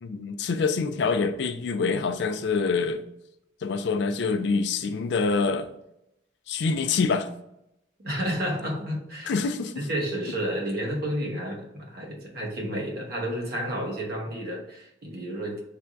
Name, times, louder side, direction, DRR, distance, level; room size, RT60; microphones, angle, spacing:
voice 1, 0.0-3.0 3.6-5.7 6.5-7.3 9.3-9.9, left 4 dB, 60° left, 0.4 m, -26 dB
voice 2, 8.0-9.4 9.8-15.6, equal, 55° right, 1.0 m, -31 dB
3.3 x 2.6 x 4.5 m
head